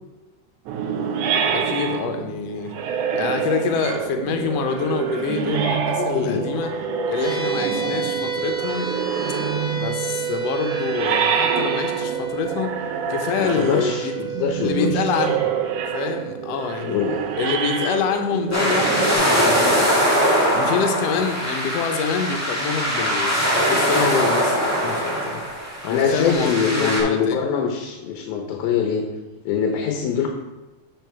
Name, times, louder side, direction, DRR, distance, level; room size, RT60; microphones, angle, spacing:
alien corridors, 0.7-19.2, right 7 dB, 90° right, 2.2 m, -26 dB
voice 1, 1.5-2.7 3.1-6.7 7.1-8.9 9.7-12.8 13.1-14.1 14.6-15.6 15.9-17.0 17.4-20.2 20.5-25.4 25.8-27.4 30.1-30.3, left 6 dB, 70° left, 5 dB, 1.7 m, -26 dB
voice 2, 6.0-6.5 7.7-8.1 13.4-15.1 16.8-17.2 25.9-29.1 29.5-30.3, left 7 dB, 90° left, 2 dB, 2.3 m, -23 dB
sound 1, 7.2-19.8, right 6 dB, 40° left, 1.5 m, -31 dB
sound 2, 18.5-27.0, equal, 10° left, 1.1 m, -21 dB
8.0 x 4.7 x 4.7 m, 1.1 s
omnidirectional pair, 3.4 m